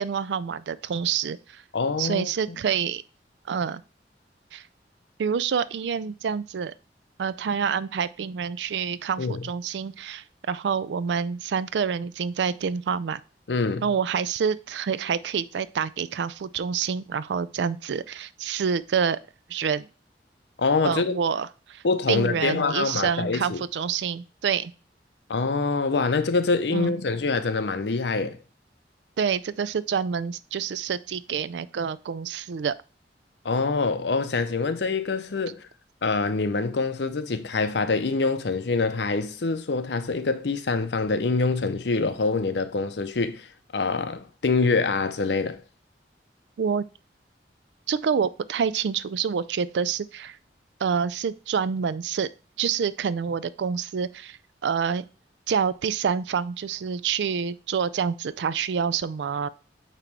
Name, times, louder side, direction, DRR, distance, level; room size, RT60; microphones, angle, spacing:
voice 1, 0.0-1.6 2.0-3.0 3.5-3.8 4.5-4.6 5.2-6.7 7.2-13.2 13.8-19.2 19.5-19.9 20.8-24.7 26.7-26.9 29.2-32.7 46.6-46.9 47.9-50.4 50.8-52.3 52.6-55.0 55.5-59.5, right 6 dB, 80° right, 0.4 m, -27 dB
voice 2, 1.7-2.6 9.2-9.5 13.5-13.9 20.6-21.2 21.8-23.6 25.3-28.4 33.4-35.7 36.0-45.6, left 3 dB, 75° left, 0.6 m, -25 dB
8.9 x 3.0 x 4.6 m
head